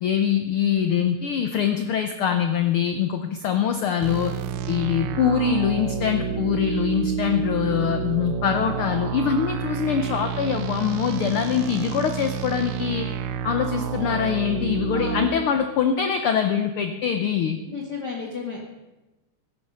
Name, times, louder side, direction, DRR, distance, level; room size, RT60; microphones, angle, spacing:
voice 1, 0.0-4.3 4.7-13.1 13.4-17.6, left 8 dB, 85° left, 7 dB, 1.2 m, -23 dB
sound 1, 4.0-15.3, right 8 dB, 80° right, 2.0 m, -29 dB
voice 2, 14.9-15.4 17.7-18.6, left 5 dB, 40° left, -2 dB, 1.8 m, -32 dB
15.5 x 10.5 x 5.5 m, 1.1 s
omnidirectional pair, 3.5 m